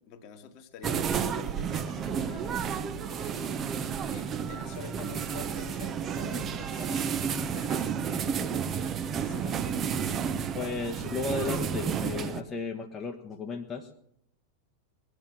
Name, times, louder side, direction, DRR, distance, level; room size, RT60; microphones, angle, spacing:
voice 1, 0.0-8.9 9.2-10.3, left 8 dB, 40° left, 6 dB, 1.7 m, -47 dB
sound 1, 0.8-12.4, right 7 dB, 30° right, 0.9 m, -31 dB
voice 2, 10.5-13.9, left 4 dB, 20° left, 2 dB, 1.2 m, -34 dB
20.0 x 9.9 x 7.2 m, 0.77 s
figure-of-eight pair, 90°, 0 cm